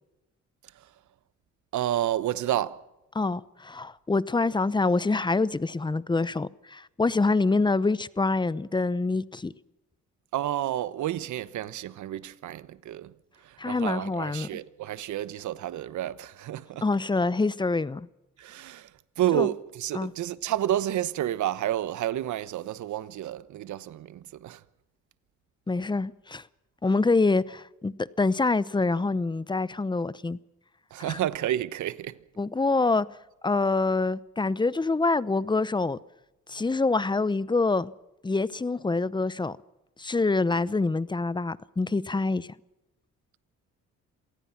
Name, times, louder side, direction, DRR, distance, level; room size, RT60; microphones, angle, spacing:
voice 1, 1.7-2.8 10.3-13.1 13.4-16.8 18.4-18.9 19.2-24.6 30.9-32.2, right 12 dB, 75° right, 1.1 m, -30 dB
voice 2, 3.1-9.5 13.6-14.5 16.8-18.1 19.3-19.5 19.9-20.1 25.7-26.4 26.8-30.4 31.0-31.2 32.4-33.1 33.4-36.0 36.5-37.9 38.2-39.6 40.0-42.5, left 3 dB, 15° left, 0.8 m, -26 dB
27.0 x 18.0 x 6.0 m
cardioid pair, 90°, 30 cm